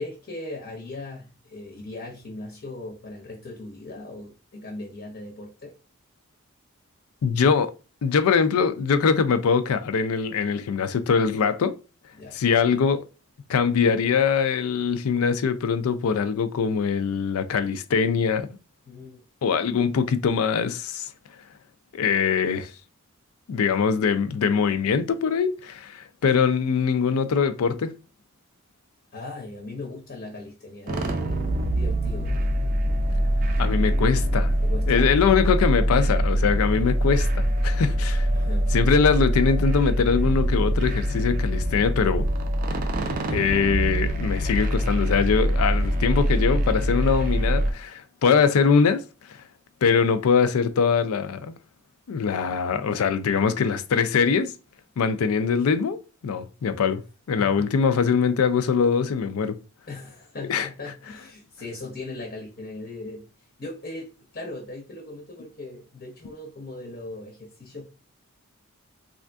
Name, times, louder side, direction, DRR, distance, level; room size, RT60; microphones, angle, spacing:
voice 1, 0.0-5.8 12.1-12.4 18.9-19.2 29.1-32.4 34.6-35.1 38.3-38.8 57.4-57.7 59.9-63.3 63.6-68.0, left 2 dB, 45° left, 0.7 m, -38 dB
voice 2, 7.2-7.7 8.0-11.7 12.3-13.0 13.5-18.5 19.4-21.1 21.9-22.7 23.5-27.9 33.6-34.5 34.9-38.3 38.7-42.3 43.3-49.0 49.8-51.5 52.1-54.5 55.0-56.0 56.2-57.0 57.3-59.6 60.5-60.7, left 6 dB, 80° left, 0.4 m, -22 dB
sound 1, 30.9-47.7, equal, 40° right, 0.4 m, -24 dB
3.4 x 2.5 x 2.2 m
head